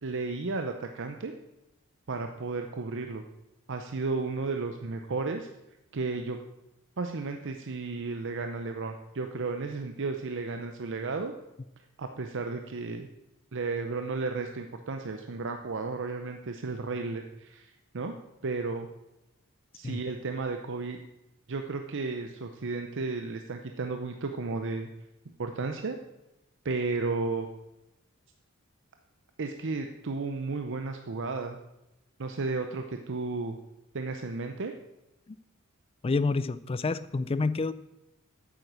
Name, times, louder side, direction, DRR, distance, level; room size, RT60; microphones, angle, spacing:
voice 1, 0.0-1.3 2.1-3.3 3.7-5.5 5.9-6.4 7.0-11.3 12.0-13.1 13.5-18.1 18.4-18.9 19.7-21.0 21.5-24.9 25.4-26.0 26.6-27.5 29.4-31.6 32.2-33.6 33.9-34.7, right 3 dB, 60° right, 5 dB, 0.7 m, -33 dB
voice 2, 36.0-37.7, left 3 dB, 25° left, 15 dB, 0.4 m, -28 dB
9.0 x 8.0 x 6.1 m, 0.91 s
head